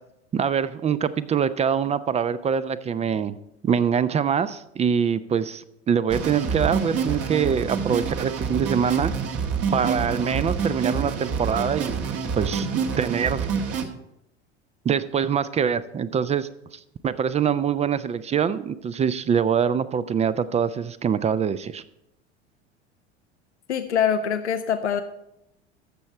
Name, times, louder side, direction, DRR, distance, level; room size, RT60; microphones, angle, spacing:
voice 1, 0.3-3.4 3.6-9.1 9.7-12.1 12.4-12.7 13.0-13.5 14.8-21.8, right 7 dB, 20° right, 15 dB, 0.4 m, -24 dB
sound 1, 6.1-13.8, right 6 dB, 45° right, 1.3 m, -27 dB
voice 2, 23.7-25.0, left 8 dB, 85° left, 9 dB, 0.6 m, -24 dB
14.0 x 6.4 x 4.5 m, 0.83 s
hypercardioid pair, 75°, 34 cm